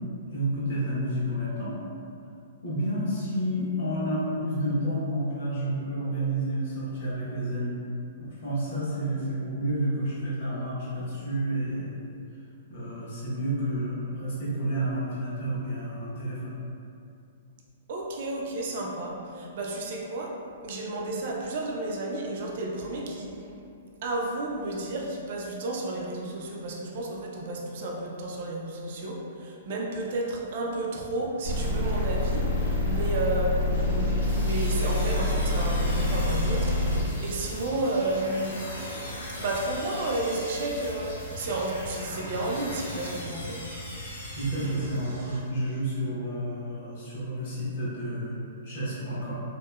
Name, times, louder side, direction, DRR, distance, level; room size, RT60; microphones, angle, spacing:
voice 1, 0.3-1.7 2.6-7.7 8.2-12.1 12.7-16.5 44.3-48.4 48.6-49.3, right 1 dB, 45° left, -9 dB, 0.9 m, -30 dB
voice 2, 17.9-23.4 24.0-38.6 39.4-43.6, right 2 dB, 45° right, -2 dB, 0.3 m, -32 dB
sound 1, 31.4-37.0, left 1 dB, 60° left, 1.3 m, -26 dB
sound 2, 33.7-45.4, equal, 75° right, 0.8 m, -42 dB
sound 3, 34.2-45.4, left 1 dB, 80° left, 0.6 m, -41 dB
2.7 x 2.0 x 2.3 m, 2.6 s
hypercardioid pair, 175°, 0 cm